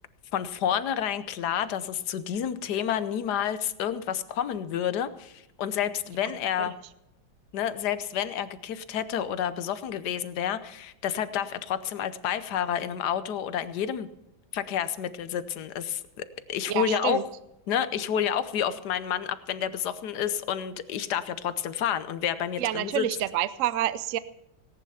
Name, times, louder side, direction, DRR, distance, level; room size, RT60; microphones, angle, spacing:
voice 1, 0.3-6.8 7.5-14.1 14.5-17.2 17.7-23.1, left 9 dB, 65° left, 13 dB, 1.3 m, -29 dB
voice 2, 16.7-17.2 22.6-24.2, right 13 dB, 70° right, 15 dB, 0.7 m, -28 dB
18.0 x 10.0 x 5.6 m, 0.86 s
omnidirectional pair, 2.1 m